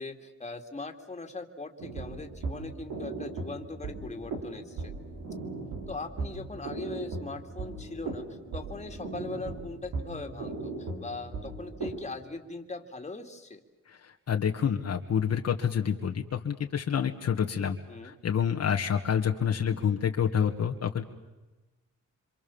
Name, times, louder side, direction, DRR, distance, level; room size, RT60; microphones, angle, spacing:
voice 1, 0.0-4.9 5.9-13.6 17.9-18.1, left 3 dB, 20° left, 5 dB, 2.6 m, -40 dB
sound 1, 1.8-12.0, right 3 dB, 85° right, 6.5 m, -38 dB
voice 2, 14.3-17.8 18.0-21.0, left 8 dB, 60° left, 3 dB, 1.7 m, -28 dB
27.5 x 25.5 x 7.2 m, 1.1 s
cardioid pair, 100°, 30 cm